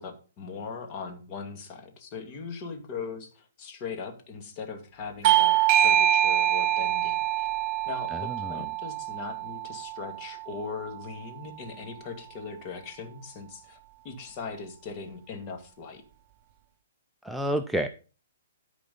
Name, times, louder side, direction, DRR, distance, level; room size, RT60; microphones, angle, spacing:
voice 1, 0.0-5.6 5.8-7.5 7.9-13.8 14.0-16.0, left 5 dB, 30° left, 4 dB, 2.2 m, -39 dB
Bell / Doorbell, 5.2-10.4, right 12 dB, 35° right, 0.9 m, -25 dB
voice 2, 8.1-8.6 17.2-17.9, right 1 dB, ahead, 6 dB, 0.4 m, -30 dB
13.0 x 4.8 x 5.4 m, 0.35 s
hypercardioid pair, 155°, 0 cm